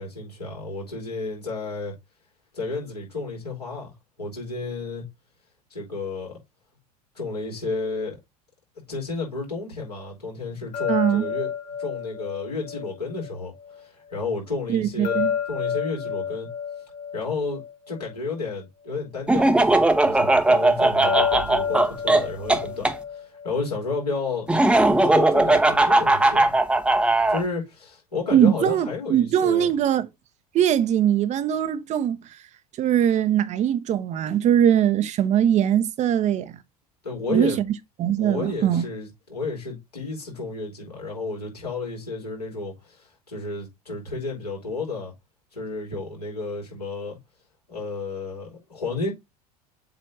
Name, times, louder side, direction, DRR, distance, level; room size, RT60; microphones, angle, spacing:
voice 1, 0.0-2.0 2.5-5.0 5.7-6.4 7.1-8.2 8.9-11.5 11.8-16.5 17.1-26.6 27.3-29.7 37.0-37.6 38.2-45.1 45.5-47.2 47.7-49.1, left 3 dB, 85° left, 4.3 m, -32 dB
sound 1, 10.7-13.8 15.0-18.6 21.0-24.1, left 7 dB, 40° left, 2.0 m, -30 dB
voice 2, 10.9-11.3 14.7-15.3 28.3-30.1 30.5-32.2 32.8-36.6 37.3-37.6 38.0-38.9, right 10 dB, 35° right, 0.8 m, -21 dB
Laughter, 19.3-22.9 24.5-27.4, right 2 dB, 5° right, 0.8 m, -19 dB
7.8 x 3.4 x 4.0 m
figure-of-eight pair, 75°, 20 cm